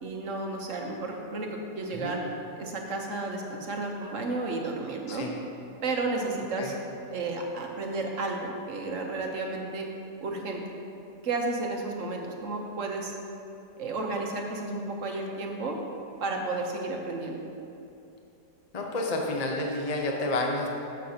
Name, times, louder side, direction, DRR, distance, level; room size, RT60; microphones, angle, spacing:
voice 1, 0.0-2.2 2.5-5.3 5.8-6.8 7.1-9.9 10.2-10.6 11.2-13.1 13.8-15.8 16.2-17.4, right 3 dB, 55° right, 1 dB, 1.1 m, -32 dB
voice 2, 18.7-20.7, left 2 dB, 45° left, 0 dB, 0.5 m, -30 dB
14.0 x 6.7 x 2.8 m, 2.7 s
omnidirectional pair, 1.8 m